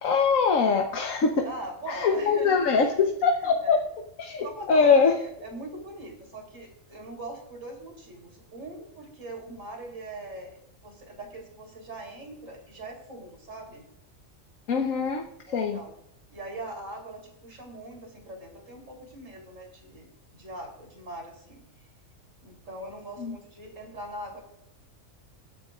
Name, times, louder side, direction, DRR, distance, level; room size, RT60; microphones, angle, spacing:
voice 1, 0.0-1.5 1.9-3.8 4.2-5.1 14.7-15.2 15.5-15.8 23.2-23.3, left 5 dB, 85° left, 2 dB, 1.5 m, -23 dB
voice 2, 1.4-2.9 3.4-3.8 4.4-13.9 15.5-15.9 16.3-21.6 22.4-24.4, right 1 dB, 75° right, 1 dB, 4.1 m, -41 dB
22.5 x 10.5 x 2.5 m, 0.79 s
omnidirectional pair, 1.3 m